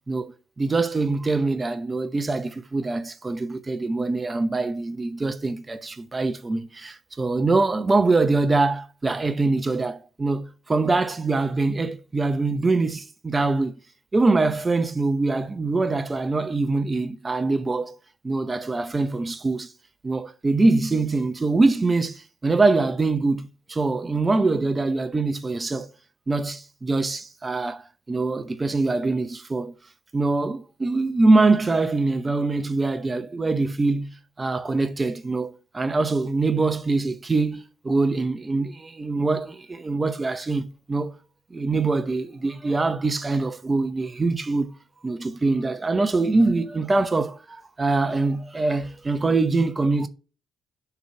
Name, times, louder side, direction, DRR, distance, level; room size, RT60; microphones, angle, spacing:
voice 1, 0.1-13.7 14.1-18.0 18.2-19.7 20.0-25.9 26.3-29.7 30.1-41.1 41.5-44.7 45.0-50.1, right 3 dB, 25° right, 0.7 m, -23 dB
6.7 x 3.1 x 5.7 m
cardioid pair, 90°, 0 cm